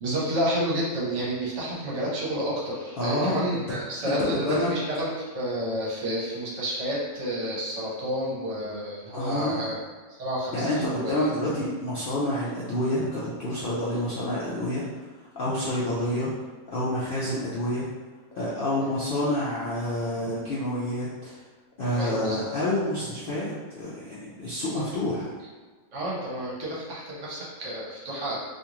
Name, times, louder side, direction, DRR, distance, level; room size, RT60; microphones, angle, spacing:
voice 1, 0.0-9.8 10.1-11.1 21.9-22.4 24.7-24.8 25.9-28.4, equal, 60° right, -5 dB, 1.0 m, -30 dB
voice 2, 3.0-3.8 4.0-4.7 9.1-9.6 10.5-16.3 16.7-17.9 18.4-21.4 21.8-25.3, left 1 dB, 60° left, -8 dB, 0.6 m, -28 dB
2.6 x 2.4 x 2.9 m, 1.4 s
omnidirectional pair, 1.5 m